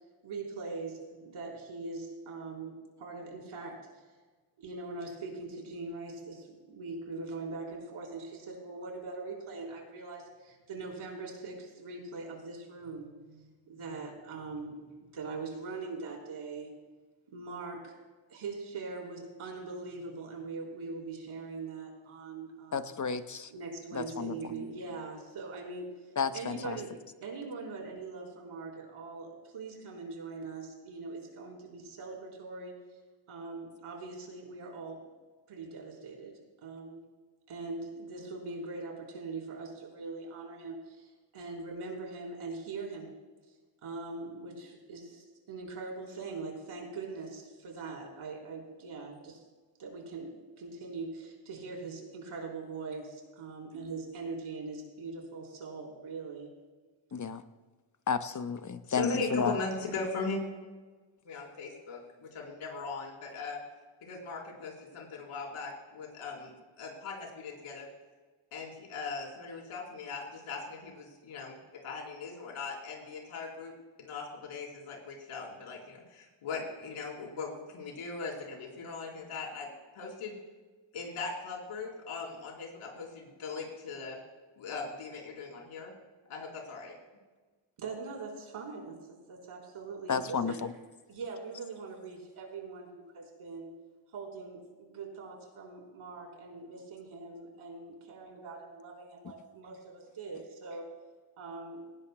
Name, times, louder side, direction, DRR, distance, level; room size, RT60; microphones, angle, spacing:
voice 1, 0.2-3.9 4.6-16.7 17.3-17.9 18.3-22.9 23.5-25.9 26.3-32.7 33.3-35.1 35.5-37.0 37.5-41.1 41.3-43.2 43.8-49.4 49.8-56.5 87.8-90.6 91.1-93.7 94.1-100.9 101.4-101.9, right 3 dB, 80° right, -1 dB, 4.0 m, -42 dB
voice 2, 22.7-23.5 23.9-24.4 26.2-26.8 57.1-57.4 58.1-59.6 90.1-90.7, left 5 dB, 35° left, 10 dB, 0.9 m, -32 dB
voice 3, 58.9-60.4 61.2-63.6 64.1-66.5 66.8-67.9 68.5-71.6 71.8-73.7 74.0-79.7 79.9-80.4 80.9-84.2 84.6-85.9 86.3-86.9, left 4 dB, 90° left, -1 dB, 4.0 m, -39 dB
18.5 x 17.0 x 2.2 m, 1.3 s
cardioid pair, 75°, 50 cm